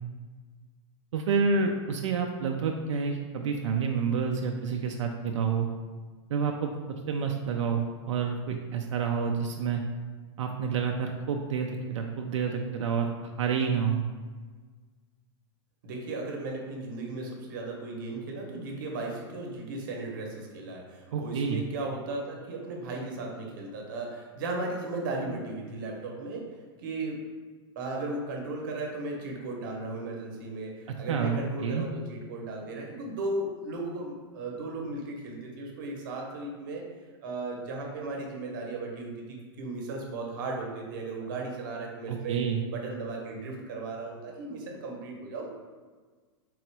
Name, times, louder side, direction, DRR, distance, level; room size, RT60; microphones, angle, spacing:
voice 1, 1.1-5.7 6.3-6.7 7.1-9.8 10.4-13.1 13.4-14.1 21.1-21.6 31.1-31.9 42.1-42.6, right 5 dB, 80° right, 2 dB, 0.5 m, -28 dB
voice 2, 15.8-26.5 26.8-27.2 27.7-36.9 37.2-42.4 42.7-45.5, right 2 dB, 40° right, 0 dB, 0.9 m, -36 dB
3.8 x 3.0 x 4.6 m, 1.5 s
supercardioid pair, 180°, 15 cm